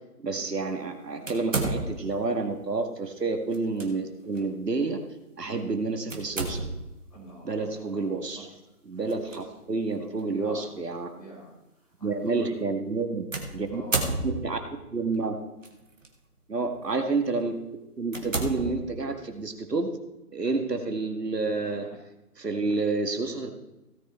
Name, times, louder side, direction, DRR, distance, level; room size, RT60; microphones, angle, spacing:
voice 1, 0.2-5.0 5.4-6.7 7.4-8.5 8.9-11.1 12.0-13.8 14.2-14.6 14.9-15.4 16.5-17.6 18.0-19.9 20.3-21.9 22.4-23.5, right 3 dB, 90° right, 5 dB, 1.9 m, -29 dB
sound 1, 1.3-2.2 3.5-3.9 4.3-4.5 6.1-7.0 9.1-9.4 10.2-10.3 13.3-14.7 15.6-16.1 16.6-16.8 17.4-17.5 18.1-19.3, right 2 dB, 55° right, 1.8 m, -31 dB
voice 2, 7.1-8.4 8.9-9.4 10.0-10.7 11.0-11.5 12.0-12.6 13.7-14.2 20.4-20.6 21.4-21.8, equal, 25° left, -6 dB, 4.8 m, -44 dB
17.0 x 6.6 x 4.4 m, 0.97 s
figure-of-eight pair, 175°, 47 cm